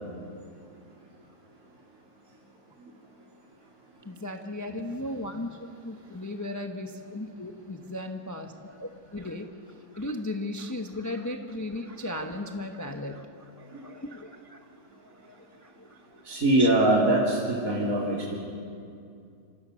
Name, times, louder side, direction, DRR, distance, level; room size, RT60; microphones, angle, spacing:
voice 1, 4.0-9.5 9.9-14.8 15.1-16.2 16.6-16.7, left 1 dB, 10° left, 3 dB, 1.1 m, -36 dB
voice 2, 16.3-18.3, right 1 dB, 60° right, -5 dB, 3.5 m, -23 dB
28.0 x 25.5 x 6.5 m, 2.5 s
omnidirectional pair, 1.7 m